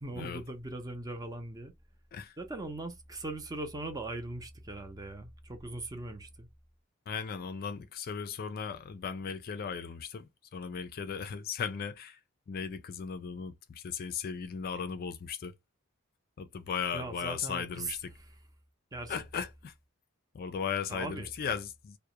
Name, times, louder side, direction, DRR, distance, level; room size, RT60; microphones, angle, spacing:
voice 1, 0.0-1.7 2.4-6.5 16.9-18.3 18.9-19.2 20.9-21.3, right 2 dB, 15° right, 0.5 m, -40 dB
voice 2, 7.1-12.2 12.5-15.5 16.4-18.1 19.1-19.7 20.3-22.0, left 6 dB, 45° left, 0.3 m, -37 dB
2.3 x 2.1 x 2.8 m
head